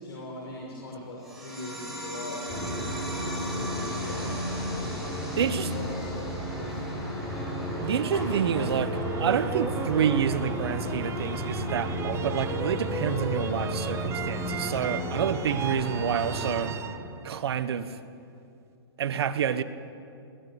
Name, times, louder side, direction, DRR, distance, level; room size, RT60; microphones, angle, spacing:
voice 1, 0.0-2.7 3.3-4.4 5.3-6.3 6.5-7.0, left 2 dB, 75° left, -2 dB, 5.7 m, -41 dB
sound 1, 1.2-12.2, right 1 dB, ahead, 7.4 m, -41 dB
sound 2, 2.5-16.7, equal, 20° left, 5.6 m, -33 dB
voice 2, 5.4-5.7 7.8-16.7 17.2-18.0 19.0-19.6, right 8 dB, 75° right, 12 dB, 1.3 m, -28 dB
sound 3, 7.2-18.2, right 8 dB, 20° right, 0.7 m, -38 dB
22.5 x 18.5 x 8.4 m, 2.5 s
hypercardioid pair, 130°, 13 cm